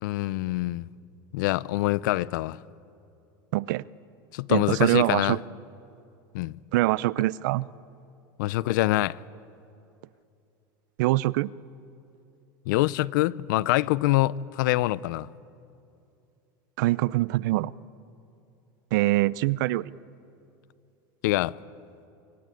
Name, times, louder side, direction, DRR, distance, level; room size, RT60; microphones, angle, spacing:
voice 1, 0.0-0.9 1.3-2.6 4.3-5.4 6.3-6.6 8.4-9.2 12.7-15.3 21.2-21.5, left 17 dB, 80° left, 0.6 m, -25 dB
voice 2, 3.5-3.8 4.5-5.4 6.7-7.7 11.0-11.5 16.8-17.7 18.9-19.9, right 18 dB, 75° right, 0.6 m, -24 dB
26.0 x 24.0 x 9.2 m
supercardioid pair, 150°, 10 cm